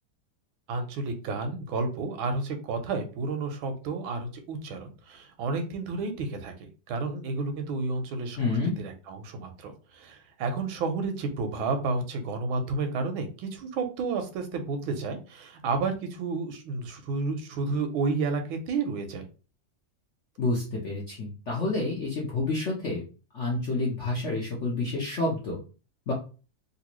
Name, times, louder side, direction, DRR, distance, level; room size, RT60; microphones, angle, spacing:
voice 1, 0.7-19.3, right 3 dB, 90° right, 6 dB, 1.5 m, -31 dB
voice 2, 8.4-8.7 20.4-23.0 23.3-25.6 26.1-26.2, left 2 dB, 60° left, -3 dB, 0.7 m, -29 dB
3.4 x 2.6 x 2.9 m, 0.35 s
omnidirectional pair, 2.2 m